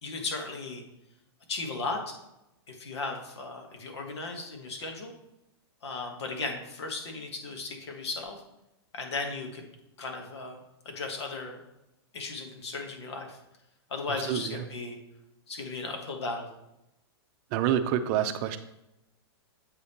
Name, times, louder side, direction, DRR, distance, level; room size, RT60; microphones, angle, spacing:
voice 1, 0.0-0.8 1.5-2.2 2.7-5.1 5.8-8.4 8.9-9.6 10.0-10.6 10.8-11.6 12.1-13.4 13.9-15.0 15.5-16.5, left 3 dB, 80° left, 3 dB, 1.5 m, -36 dB
voice 2, 14.3-14.6 17.5-18.6, right 10 dB, 45° right, 9 dB, 0.6 m, -27 dB
7.9 x 3.5 x 4.3 m, 0.88 s
hypercardioid pair, 130°, 14 cm